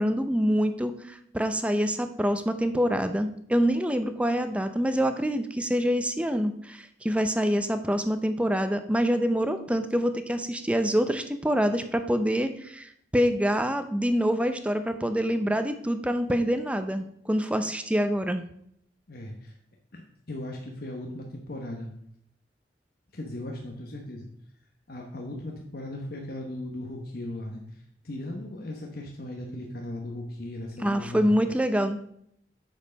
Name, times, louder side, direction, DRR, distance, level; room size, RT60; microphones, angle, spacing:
voice 1, 0.0-18.4 30.8-32.0, equal, 5° right, 9 dB, 0.5 m, -26 dB
voice 2, 19.1-19.5 19.9-20.0 20.3-21.9 23.1-24.3 24.9-31.3, left 1 dB, 55° left, 0 dB, 1.1 m, -37 dB
8.2 x 6.5 x 5.2 m, 0.70 s
head